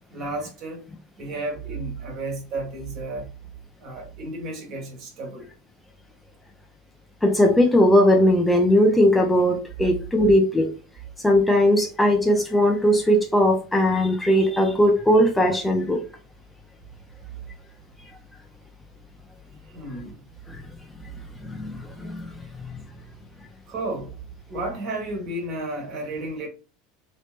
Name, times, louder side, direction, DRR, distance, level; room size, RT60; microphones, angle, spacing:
voice 1, 0.1-0.8 1.2-3.3 3.8-5.5 19.7-20.2 23.7-24.2 24.5-26.5, right 2 dB, 50° right, 1.6 m, -32 dB
voice 2, 7.2-10.7 11.2-16.0 20.5-20.7 21.4-22.8, equal, 10° left, 0.7 m, -19 dB
3.2 x 3.1 x 2.5 m
hypercardioid pair, 80°, 0 cm